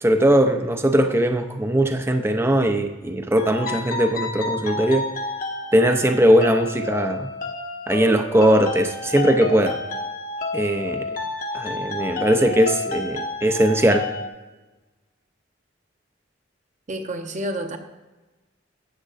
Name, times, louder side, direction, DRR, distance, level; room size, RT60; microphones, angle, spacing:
voice 1, 0.0-5.0 5.7-7.3 7.9-9.8 10.5-11.0 11.5-14.1, right 1 dB, 15° right, 6 dB, 0.5 m, -19 dB
sound 1, 3.4-14.3, left 3 dB, 45° left, 1.0 m, -30 dB
voice 2, 16.9-17.8, right 1 dB, 40° right, 6 dB, 0.8 m, -29 dB
13.0 x 8.5 x 2.5 m, 1.2 s
head